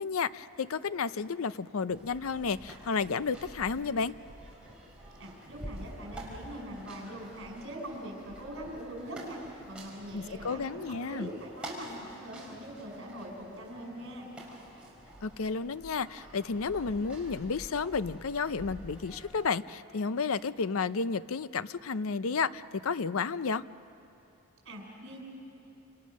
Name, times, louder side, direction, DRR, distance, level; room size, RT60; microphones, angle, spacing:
voice 1, 0.0-4.1 10.1-11.3 15.2-23.6, left 5 dB, 70° left, 15 dB, 0.5 m, -32 dB
sound 1, 1.9-19.5, right 1 dB, 5° right, 4.4 m, -48 dB
voice 2, 5.2-9.4 9.7-14.3 24.6-25.2, right 1 dB, 55° right, 0 dB, 5.9 m, -42 dB
28.5 x 27.5 x 6.5 m, 2.8 s
head